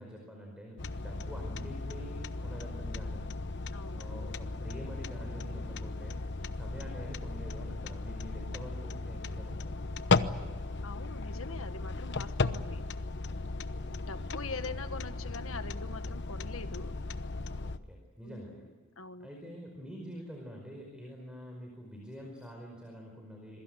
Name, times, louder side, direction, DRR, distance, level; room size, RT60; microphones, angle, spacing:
voice 1, 0.0-3.3 3.8-6.2 6.5-9.9 13.7-14.1 17.6-18.6 19.2-23.6, equal, 5° right, 1 dB, 4.9 m, -46 dB
sound 1, 0.8-17.8, left 3 dB, 55° left, 1.0 m, -36 dB
voice 2, 3.7-4.0 10.8-12.8 14.0-17.0 18.2-19.3, left 3 dB, 75° left, 10 dB, 1.5 m, -43 dB
27.0 x 22.5 x 8.0 m, 1.4 s
head